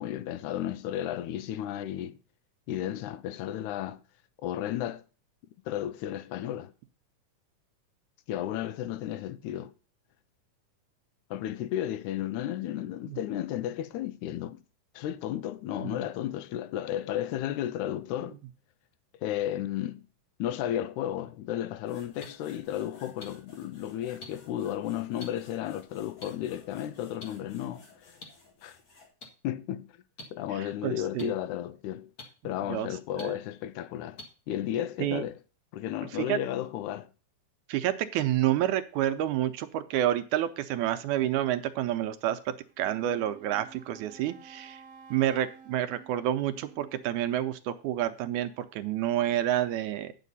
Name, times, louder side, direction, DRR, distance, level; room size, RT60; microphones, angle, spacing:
voice 1, 0.0-2.2 2.7-4.0 4.4-5.0 5.7-6.7 8.3-9.7 11.3-14.6 15.0-18.4 19.2-20.0 20.4-28.1 28.6-28.8 29.4-29.9 30.3-32.1 32.4-34.2 34.5-35.3 35.7-37.1, left 12 dB, 80° left, 1.9 m, -33 dB
sound 1, 21.8-29.1, left 3 dB, 55° left, 3.4 m, -57 dB
sound 2, 22.2-22.3 23.2-23.3 24.2-24.3 25.2-25.3 26.2-26.3 27.2-27.3 28.2-28.3 29.2-29.3 30.2-30.3 31.2-31.3 32.2-32.3 33.2-33.3 34.2-34.3 35.2-35.3, left 2 dB, 40° left, 1.5 m, -43 dB
voice 2, 30.8-31.3 32.7-32.9 33.2-33.3 35.0-35.2 36.1-36.4 37.7-44.8 45.1-50.1, right 12 dB, 80° right, 1.9 m, -29 dB
Wind instrument woodwind instrument, 42.7-47.6, right 6 dB, 45° right, 1.5 m, -52 dB
9.2 x 7.4 x 4.0 m
omnidirectional pair, 3.7 m